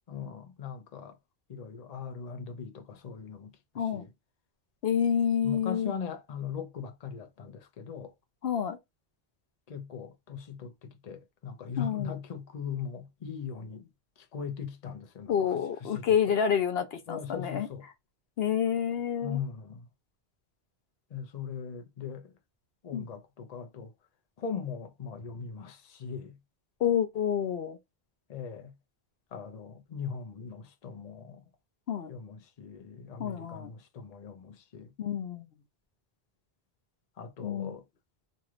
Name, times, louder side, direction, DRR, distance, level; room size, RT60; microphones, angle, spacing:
voice 1, 0.1-1.2 1.5-4.1 5.4-8.1 9.7-13.9 14.3-15.4 15.8-16.0 17.1-17.8 19.2-19.9 21.1-22.3 22.8-23.9 24.4-26.4 28.3-28.7 29.3-31.4 32.1-34.9 37.2-37.8, left 6 dB, 45° left, 0.7 m, -40 dB
voice 2, 4.8-5.9 8.4-8.8 11.8-12.2 15.3-17.7 18.4-19.4 22.9-23.1 26.8-27.8 31.9-32.1 33.2-33.7 35.0-35.4 37.4-37.8, left 8 dB, 70° left, 0.8 m, -28 dB
3.1 x 2.6 x 2.4 m
omnidirectional pair, 1.1 m